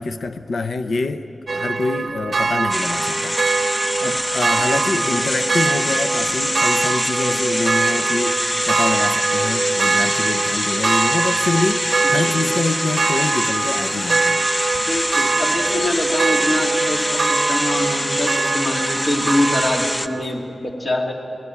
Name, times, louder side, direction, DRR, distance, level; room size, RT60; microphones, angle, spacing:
voice 1, 0.0-3.3 4.0-14.4, left 3 dB, 85° left, 9 dB, 0.7 m, -25 dB
sound 1, 1.5-20.2, right 4 dB, 55° right, 0.7 m, -23 dB
sound 2, 2.7-20.1, left 1 dB, 20° left, 0.9 m, -25 dB
voice 2, 4.6-5.2 12.1-12.5 14.9-21.1, left 1 dB, 45° left, 1 dB, 2.6 m, -24 dB
23.0 x 19.5 x 8.5 m, 2.8 s
wide cardioid pair, 100°, 0 cm